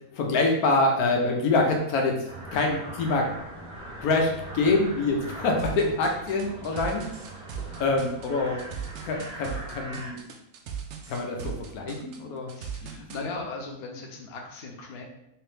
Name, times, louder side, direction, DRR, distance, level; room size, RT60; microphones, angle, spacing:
voice 1, 0.1-2.2 2.5-3.3 4.0-7.0 7.8-8.6 9.0-10.2 11.1-12.5, left 3 dB, 75° left, 2 dB, 1.2 m, -25 dB
sound 1, 2.3-10.1, right 1 dB, 20° left, 1.5 m, -41 dB
sound 2, 5.6-13.2, right 7 dB, 65° right, 0.7 m, -38 dB
voice 2, 12.5-15.0, left 3 dB, 55° left, 0 dB, 0.8 m, -38 dB
3.3 x 3.0 x 3.2 m, 0.81 s
omnidirectional pair, 1.6 m